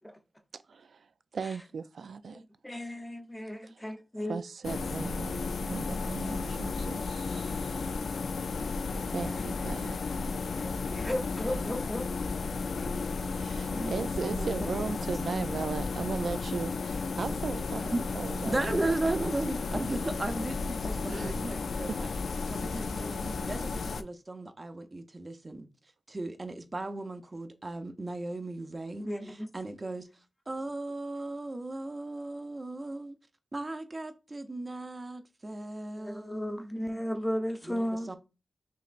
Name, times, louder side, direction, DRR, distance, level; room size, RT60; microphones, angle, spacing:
voice 1, 0.5-1.1 1.3-2.4 3.6-3.9 4.3-7.9 9.1-10.3 13.4-19.3 21.1-21.4 21.9-22.0 22.8-22.9, right 5 dB, 85° right, 0.3 m, -38 dB
voice 2, 2.3-4.4 5.0-5.1 10.5-12.1 12.8-12.9 29.0-29.5 36.0-38.1, equal, 15° left, 0.7 m, -35 dB
sound 1, 4.6-24.0, left 4 dB, 85° left, 0.3 m, -33 dB
voice 3, 13.7-14.5 17.3-17.4 17.9-18.0 18.5-22.1 22.5-25.7 26.1-30.1 30.5-33.1 33.5-36.9 37.6-38.2, right 2 dB, 35° right, 0.7 m, -36 dB
5.6 x 3.0 x 2.5 m
cardioid pair, 70°, 0 cm